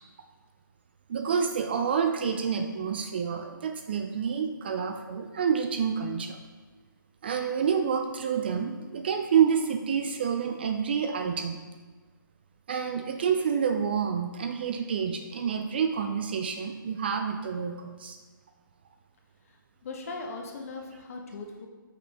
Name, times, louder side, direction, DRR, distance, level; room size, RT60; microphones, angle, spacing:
voice 1, 1.1-6.4 7.2-11.6 12.7-18.2, right 7 dB, 30° right, 6 dB, 0.3 m, -28 dB
voice 2, 19.8-21.7, left 3 dB, 40° left, 2 dB, 1.0 m, -39 dB
6.5 x 5.9 x 3.5 m, 1.4 s
figure-of-eight pair, 145°, 11 cm